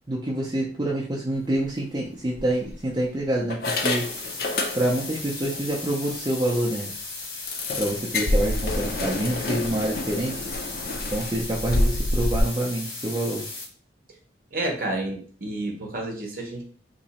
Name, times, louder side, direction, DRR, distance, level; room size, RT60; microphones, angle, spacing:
voice 1, 0.1-4.1 4.7-6.9 7.8-10.4 11.1-13.5, right 1 dB, 25° right, -4 dB, 0.5 m, -27 dB
sound 1, 1.4-1.7 2.3-3.0 3.5-5.2 5.5-5.6 6.0-6.1 6.5-6.6 7.5-12.4, left 2 dB, 50° left, 0.5 m, -28 dB
sound 2, 3.6-13.6, left 3 dB, 90° left, 1.0 m, -36 dB
voice 2, 14.5-16.6, right 1 dB, 50° right, 1 dB, 0.9 m, -30 dB
2.9 x 2.6 x 4.0 m, 0.43 s
head